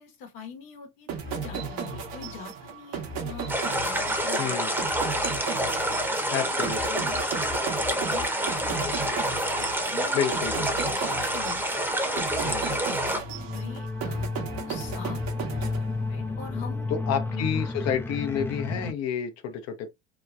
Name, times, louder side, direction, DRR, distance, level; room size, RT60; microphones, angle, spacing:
voice 1, 0.0-4.5 5.4-9.5 9.9-10.2 10.7-11.6 12.0-16.9 17.3-17.5, left 6 dB, 75° left, 1.2 m, -44 dB
sound 1, 1.1-16.4, right 5 dB, 65° right, 1.0 m, -35 dB
sound 2, 3.5-13.2, right 1 dB, 5° right, 0.9 m, -28 dB
voice 2, 4.4-4.7 6.3-7.0 10.1-10.9 12.4-12.6 16.9-19.9, left 8 dB, 60° left, 0.8 m, -30 dB
sound 3, 13.2-18.9, left 3 dB, 10° left, 0.3 m, -32 dB
3.0 x 2.2 x 2.5 m
hypercardioid pair, 75°, 29 cm